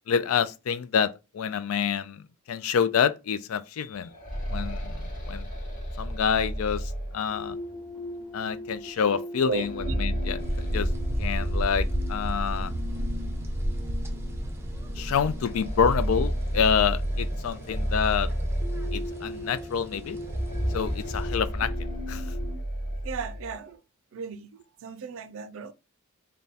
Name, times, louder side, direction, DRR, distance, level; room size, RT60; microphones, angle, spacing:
voice 1, 0.1-4.1 4.5-5.0 5.3-5.5 6.0-7.6 8.3-9.7 10.0-10.9 11.2-12.7 15.0-18.3 18.9-20.2 20.7-21.7 22.1-22.3, left 7 dB, 70° left, 0.4 m, -27 dB
sound 1, 3.9-7.7 9.5-11.7 12.0-12.1 13.0-13.1 13.6-13.7 15.3-19.5 20.2-23.5, equal, 40° left, 1.0 m, -32 dB
sound 2, 7.3-22.6, left 2 dB, 10° left, 1.0 m, -41 dB
voice 2, 9.4-10.0 23.0-23.8 24.1-25.7, right 5 dB, 65° right, 0.4 m, -35 dB
sound 3, 10.4-21.3, equal, 10° right, 0.6 m, -33 dB
3.5 x 2.2 x 4.0 m
head